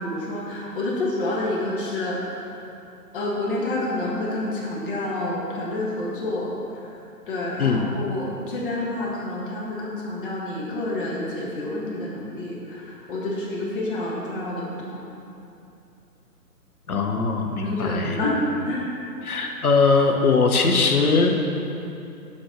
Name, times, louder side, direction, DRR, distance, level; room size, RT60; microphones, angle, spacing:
voice 1, 0.0-2.4 3.1-6.5 6.8-6.9 7.3-15.0 17.4-18.4 18.6-18.9, left 2 dB, 35° left, -5 dB, 1.5 m, -28 dB
voice 2, 16.9-18.2 19.2-21.3, left 4 dB, 65° left, 2 dB, 1.1 m, -20 dB
7.4 x 4.5 x 6.0 m, 2.8 s
figure-of-eight pair, 140°, 48 cm